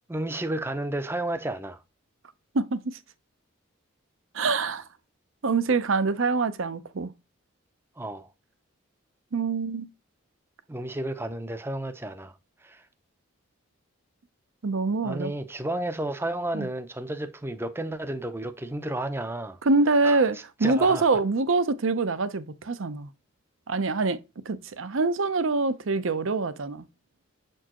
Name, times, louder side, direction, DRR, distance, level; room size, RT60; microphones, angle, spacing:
voice 1, 0.1-1.8 8.0-8.3 10.7-12.3 12.6-12.8 15.0-19.6 20.0-20.2 20.6-21.0, right 1 dB, 10° right, 0.5 m, -32 dB
voice 2, 2.5-3.0 4.3-4.8 5.4-7.1 9.3-9.9 14.6-15.3 16.5-16.7 19.6-23.1 23.7-24.2 24.5-26.9, right 3 dB, 70° right, 0.6 m, -25 dB
7.1 x 4.5 x 2.9 m
head